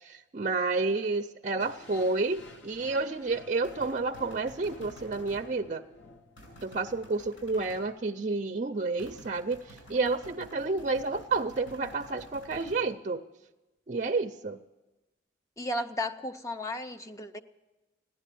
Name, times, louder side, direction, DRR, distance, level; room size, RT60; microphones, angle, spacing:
voice 1, 0.0-5.8 6.6-13.2 13.9-14.6, right 3 dB, 40° right, 6 dB, 0.4 m, -30 dB
sound 1, 1.6-7.6, left 2 dB, 70° left, 0.8 m, -52 dB
sound 2, 3.6-5.5 6.4-7.9 9.0-12.8, equal, 90° left, 6.8 m, -51 dB
voice 2, 15.6-17.4, left 1 dB, 15° left, 7 dB, 0.5 m, -34 dB
15.5 x 10.5 x 8.4 m, 1.1 s
head